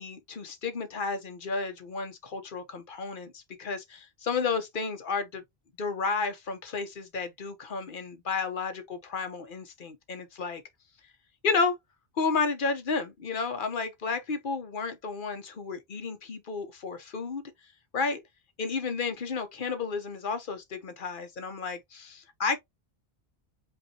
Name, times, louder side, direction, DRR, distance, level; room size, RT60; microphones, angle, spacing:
voice 1, 0.0-5.4 5.8-10.6 11.4-11.7 12.2-17.4 17.9-18.2 18.6-22.6, left 4 dB, 55° left, 1.0 m, -32 dB
5.3 x 2.7 x 2.7 m
omnidirectional pair, 1.1 m